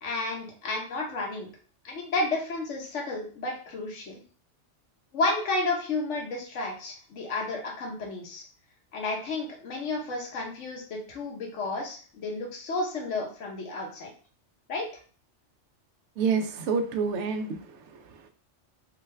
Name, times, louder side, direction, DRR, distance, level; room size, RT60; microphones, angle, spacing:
voice 1, 0.0-1.5 1.8-4.1 5.1-8.4 8.9-14.1 14.7-14.9, left 2 dB, 75° left, 0 dB, 1.3 m, -31 dB
voice 2, 16.2-18.3, right 5 dB, 75° right, 7 dB, 0.9 m, -29 dB
3.8 x 2.2 x 3.2 m, 0.41 s
omnidirectional pair, 1.3 m